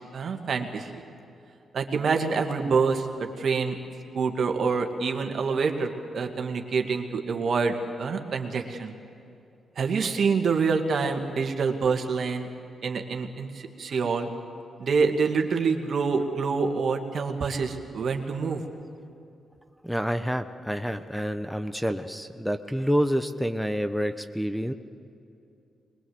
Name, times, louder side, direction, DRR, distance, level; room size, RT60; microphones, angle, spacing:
voice 1, 0.1-0.9 1.7-3.8 4.1-8.9 9.8-12.5 12.8-14.3 14.8-18.6, right 5 dB, 65° right, 5 dB, 2.1 m, -26 dB
voice 2, 19.8-24.7, equal, ahead, 9 dB, 1.1 m, -28 dB
21.5 x 21.5 x 8.0 m, 2.6 s
supercardioid pair, 50°, 0 cm